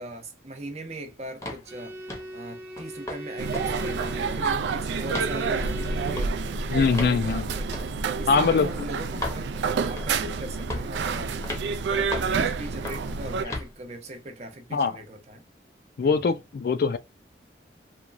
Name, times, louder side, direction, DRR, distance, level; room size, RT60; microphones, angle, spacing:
voice 1, 0.0-6.4 6.8-11.4 11.7-15.4 16.0-16.4, right 1 dB, 40° right, 0.7 m, -40 dB
sound 1, 1.4-1.7 2.1-2.3 2.8-3.2 3.5-3.7 4.0-4.6 5.1-5.3 6.1-6.3 6.9-7.2 7.7-7.9 8.5-8.6 9.2-9.4 10.0-10.2 10.7-11.0 11.4-11.7 12.1-12.4 12.8-13.1 13.5-13.7, left 2 dB, 15° left, 0.7 m, -35 dB
Bowed string instrument, 1.6-6.3, right 1 dB, 15° right, 1.0 m, -39 dB
sound 2, 3.4-13.4, right 5 dB, 85° right, 0.3 m, -28 dB
voice 2, 6.7-7.5 8.3-8.7 14.7-14.9 16.0-17.0, left 5 dB, 55° left, 0.3 m, -22 dB
2.9 x 2.3 x 2.4 m
head